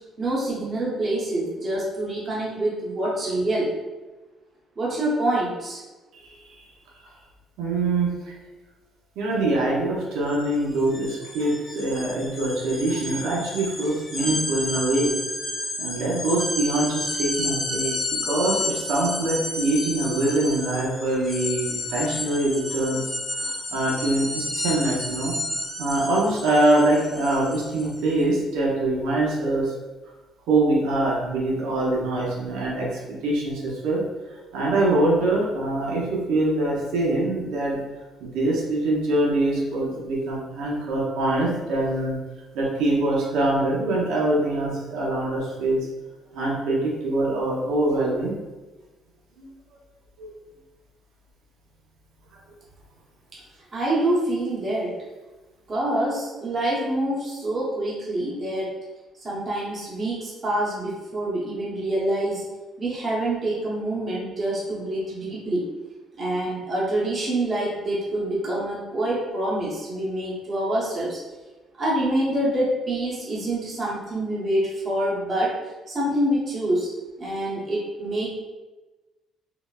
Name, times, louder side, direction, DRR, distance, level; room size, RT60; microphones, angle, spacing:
voice 1, 0.2-3.7 4.8-5.8 53.3-53.4 53.7-54.9 55.7-58.7 59.2-62.4 62.8-65.6 66.2-71.2 71.8-75.5 75.9-76.9 77.2-78.3, right 1 dB, 35° right, -7 dB, 0.9 m, -26 dB
voice 2, 7.6-8.1 9.2-15.1 15.8-17.9 18.2-25.3 25.8-29.7 30.5-34.0 34.5-37.8 38.2-42.2 42.5-45.9 46.3-48.3 49.4-49.5 50.2-50.3, right 2 dB, 85° right, -4 dB, 0.8 m, -24 dB
sound 1, 10.3-10.4 10.7-28.0, left 2 dB, 45° left, 0.9 m, -31 dB
3.8 x 2.1 x 2.3 m, 1.2 s
cardioid pair, 120°, 0 cm